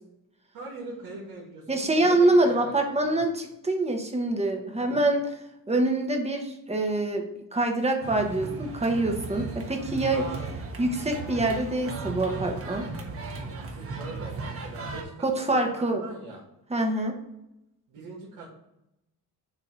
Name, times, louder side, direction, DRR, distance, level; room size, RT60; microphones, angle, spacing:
voice 1, 0.5-2.7 3.1-3.2 4.8-5.0 10.1-10.7 13.5-16.4 17.9-18.5, right 3 dB, 80° right, -4 dB, 1.7 m, -41 dB
voice 2, 1.7-5.3 5.7-7.2 7.5-10.2 10.8-12.9 15.2-16.0 16.7-17.2, right 2 dB, 15° right, 3 dB, 1.0 m, -25 dB
sound 1, 8.0-15.0, right 3 dB, 35° right, 1.1 m, -36 dB
7.0 x 2.9 x 4.7 m, 0.88 s
cardioid pair, 120°, 38 cm